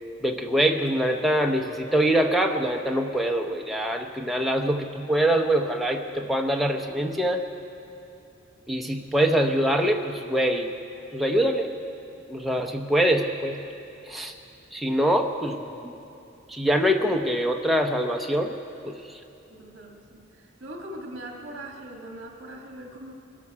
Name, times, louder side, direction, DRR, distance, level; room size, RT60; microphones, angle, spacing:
voice 1, 0.2-7.4 8.7-10.7 11.1-11.8 12.3-13.6 14.1-14.3 14.7-15.9 16.5-18.5 18.8-19.2, right 1 dB, ahead, 2 dB, 0.8 m, -24 dB
voice 2, 19.5-23.1, right 1 dB, 55° right, 0 dB, 1.7 m, -41 dB
23.0 x 13.0 x 4.8 m, 2.7 s
head